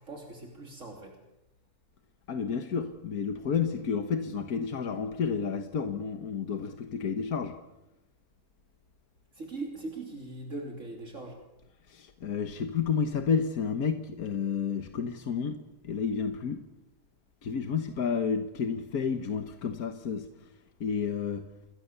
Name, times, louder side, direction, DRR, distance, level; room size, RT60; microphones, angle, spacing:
voice 1, 0.1-1.2 9.4-11.4, right 2 dB, 60° right, 3.5 m, -40 dB
voice 2, 2.3-7.6 11.9-16.6 17.4-20.3 20.8-21.4, left 6 dB, 85° left, 1.7 m, -31 dB
28.5 x 21.5 x 6.9 m
omnidirectional pair, 1.5 m